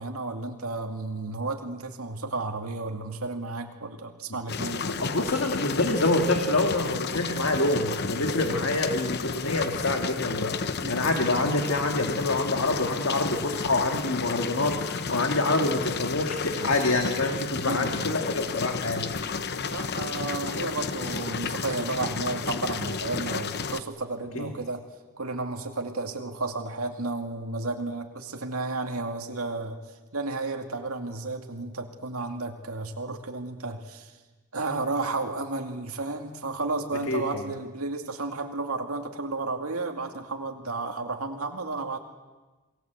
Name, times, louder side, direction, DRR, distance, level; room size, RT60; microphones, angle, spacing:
voice 1, 0.0-4.8 10.8-11.1 17.6-18.1 19.7-24.8 25.2-29.8 30.1-34.1 34.5-42.0, right 3 dB, 90° right, 3 dB, 2.3 m, -32 dB
sound 1, 4.5-23.8, left 5 dB, 50° left, 0.9 m, -32 dB
voice 2, 4.8-10.6 10.9-19.1 24.4-24.5 37.1-37.4, left 2 dB, 65° left, 4 dB, 2.0 m, -26 dB
28.0 x 19.5 x 8.1 m, 1.2 s
head